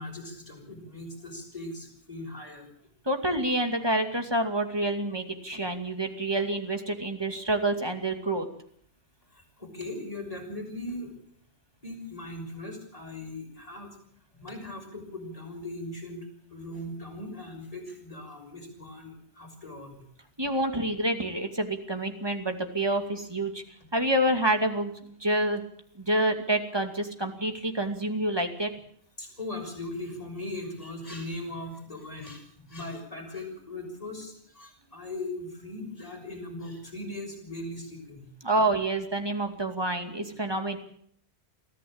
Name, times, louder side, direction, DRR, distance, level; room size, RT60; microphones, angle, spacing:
voice 1, 0.0-2.7 9.3-11.1 11.8-14.0 14.3-20.0 20.4-20.5 29.2-38.3, left 2 dB, 35° left, 1 dB, 6.2 m, -39 dB
voice 2, 3.1-8.5 20.4-23.6 23.9-25.6 26.0-28.7 38.4-40.8, right 1 dB, 20° right, 5 dB, 2.5 m, -28 dB
23.5 x 15.0 x 8.8 m, 0.65 s
omnidirectional pair, 1.1 m